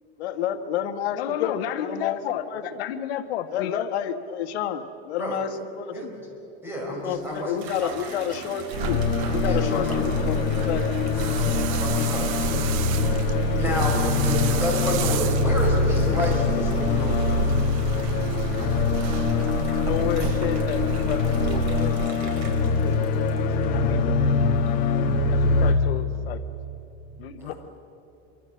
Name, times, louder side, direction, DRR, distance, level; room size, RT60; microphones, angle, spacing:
voice 1, 0.2-2.2 2.5-2.6 3.5-5.5 5.8-6.1 7.0-9.0 9.3-11.1 11.9-12.1, left 9 dB, 80° left, 7 dB, 1.5 m, -30 dB
voice 2, 1.2-3.9 10.3-10.5 19.7-23.1 23.4-24.5 25.3-26.4 27.2-27.5, left 10 dB, 65° left, 9 dB, 1.1 m, -32 dB
voice 3, 5.9-6.3 6.6-7.9 9.4-10.1 11.7-12.7 13.6-14.0 14.2-17.5 27.4-27.6, equal, 5° right, -2 dB, 5.3 m, -30 dB
Water tap faucet / Bathtub (filling or washing), 7.0-23.9 24.4-25.0, right 4 dB, 75° right, 5.0 m, -44 dB
sound 1, 8.7-25.7, left 4 dB, 25° left, 1.4 m, -24 dB
sound 2, 8.7-22.1, right 8 dB, 30° right, 0.5 m, -30 dB
26.0 x 24.5 x 7.7 m, 2.9 s
supercardioid pair, 180°, 32 cm